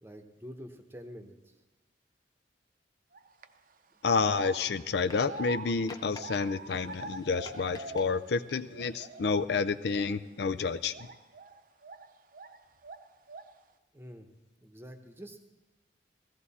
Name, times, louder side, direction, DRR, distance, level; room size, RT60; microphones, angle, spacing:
voice 1, 0.0-1.6 13.9-14.3 14.6-15.4, equal, 10° right, 6 dB, 0.9 m, -47 dB
sound 1, 3.1-3.5 4.1-8.4 8.7-9.5 9.9-10.1 10.9-12.6 12.8-13.6, right 3 dB, 45° right, 0.6 m, -44 dB
voice 2, 4.0-10.9, left 4 dB, 65° left, 12 dB, 0.4 m, -29 dB
sound 2, 5.0-5.6 5.9-6.2 6.7-8.1 8.5-9.1 10.2-10.3, left 3 dB, 20° left, 0.8 m, -50 dB
16.0 x 15.0 x 4.2 m, 1.1 s
head